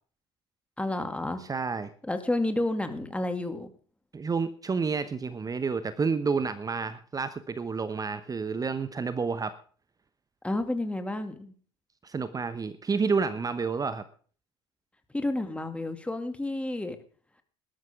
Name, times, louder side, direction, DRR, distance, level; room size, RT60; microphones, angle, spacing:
voice 1, 0.8-1.4 2.0-3.7 10.4-11.5 15.1-17.0, left 2 dB, 10° left, 7 dB, 2.5 m, -30 dB
voice 2, 1.4-1.9 4.1-9.5 12.0-14.0, right 5 dB, 25° right, 13 dB, 1.1 m, -30 dB
19.0 x 12.5 x 3.7 m, 0.42 s
hypercardioid pair, 70°, 15 cm